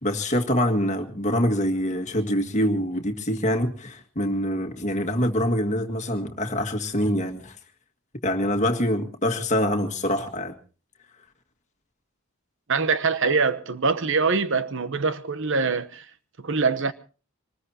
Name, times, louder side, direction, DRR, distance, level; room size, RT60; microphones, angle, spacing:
voice 1, 0.0-7.5 8.2-10.5, equal, 35° left, 1.9 m, -25 dB
voice 2, 12.7-16.1 16.4-16.9, right 4 dB, 55° right, 0.9 m, -24 dB
24.5 x 20.0 x 2.8 m
head